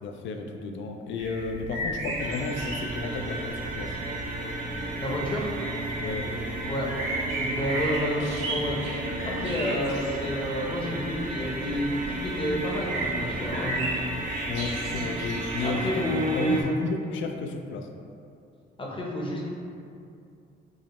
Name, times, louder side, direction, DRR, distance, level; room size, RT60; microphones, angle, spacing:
voice 1, 0.0-4.0 6.0-6.3 14.5-17.9, left 4 dB, 75° left, 5 dB, 0.4 m, -33 dB
sound 1, 1.2-15.7, right 1 dB, 80° right, 0.9 m, -36 dB
sound 2, 2.2-16.6, right 1 dB, 40° right, 0.5 m, -34 dB
voice 2, 5.0-5.5 6.7-6.9 7.4-8.8 9.2-13.9 15.6-16.7 18.8-19.5, equal, 25° left, -2 dB, 0.7 m, -29 dB
4.7 x 2.1 x 3.0 m, 2.5 s
cardioid pair, 90°, 20 cm